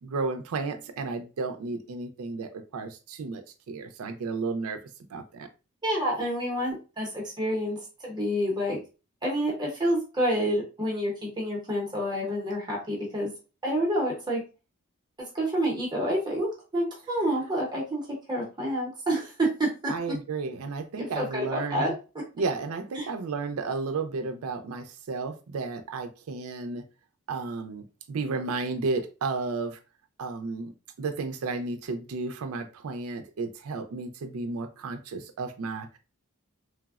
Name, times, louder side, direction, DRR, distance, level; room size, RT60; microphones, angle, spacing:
voice 1, 0.0-4.8 5.1-5.5 19.9-21.9 22.4-26.8 27.3-29.8 30.2-30.7 31.0-36.0, right 4 dB, 80° right, 7 dB, 0.4 m, -33 dB
voice 2, 5.8-7.8 8.0-8.8 9.2-13.3 13.6-14.4 15.3-19.9 21.0-21.9 22.9-23.1, equal, 20° right, -2 dB, 0.6 m, -28 dB
3.2 x 2.0 x 2.3 m, 0.32 s
head